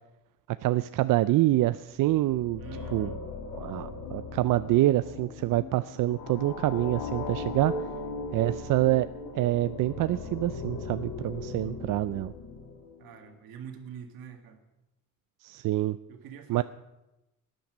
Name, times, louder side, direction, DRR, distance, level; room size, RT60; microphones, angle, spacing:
voice 1, 0.6-2.6 2.9-3.1 3.5-7.7 8.3-9.1 9.4-12.3 15.4-16.0 16.5-16.6, right 16 dB, 70° right, 13 dB, 0.5 m, -26 dB
sound 1, 1.9-13.2, left 3 dB, 80° left, 1.8 m, -38 dB
voice 2, 2.6-3.2 13.0-14.6 16.1-16.6, right 7 dB, 85° right, 5 dB, 1.9 m, -45 dB
13.5 x 10.0 x 6.2 m, 0.96 s
cardioid pair, 85°, 34 cm